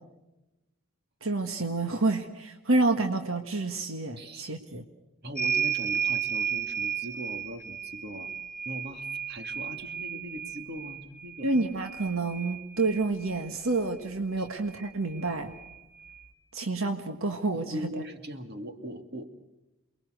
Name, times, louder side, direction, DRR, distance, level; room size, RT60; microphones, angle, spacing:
voice 1, 1.2-4.8 11.4-15.5 16.5-17.8, right 3 dB, 75° right, 6 dB, 1.6 m, -28 dB
voice 2, 5.2-8.3 8.6-11.5 14.4-14.5 17.5-19.3, equal, 50° right, 6 dB, 2.4 m, -40 dB
sound 1, 5.4-13.5 14.7-14.8 15.1-16.2, right 8 dB, 5° left, 1.5 m, -33 dB
28.5 x 21.5 x 6.5 m, 0.98 s
head